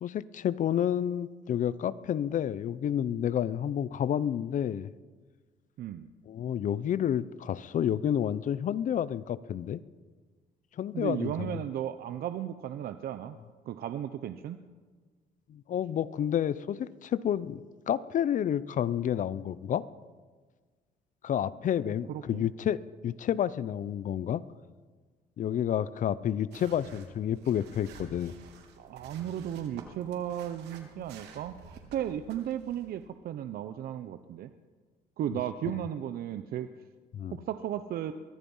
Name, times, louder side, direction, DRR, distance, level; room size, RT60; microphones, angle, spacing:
voice 1, 0.0-4.9 6.3-9.8 10.8-11.6 15.5-19.8 21.2-22.8 23.0-24.4 25.4-28.3 37.1-37.4, left 9 dB, 50° left, 18 dB, 0.7 m, -30 dB
voice 2, 5.8-6.1 10.9-13.4 13.7-14.6 21.9-22.5 28.8-34.5 35.2-36.7 37.3-38.1, right 10 dB, 65° right, 10 dB, 0.9 m, -35 dB
sound 1, 26.5-33.1, right 5 dB, 85° right, 3.3 m, -51 dB
23.5 x 22.0 x 5.6 m, 1.5 s
cardioid pair, 110°, 17 cm